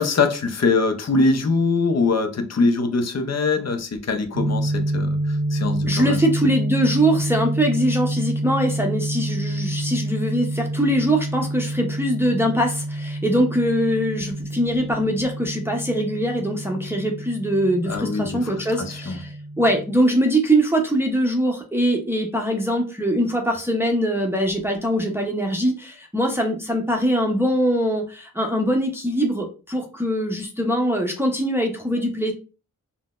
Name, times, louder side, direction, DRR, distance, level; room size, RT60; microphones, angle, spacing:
voice 1, 0.0-6.2 17.9-18.5 18.9-19.2, left 3 dB, 55° left, 0.6 m, -22 dB
sound 1, 4.3-20.0, right 1 dB, 75° right, 0.7 m, -28 dB
voice 2, 5.9-32.3, equal, 5° right, 0.6 m, -22 dB
3.8 x 2.1 x 2.4 m
wide cardioid pair, 65°, 32 cm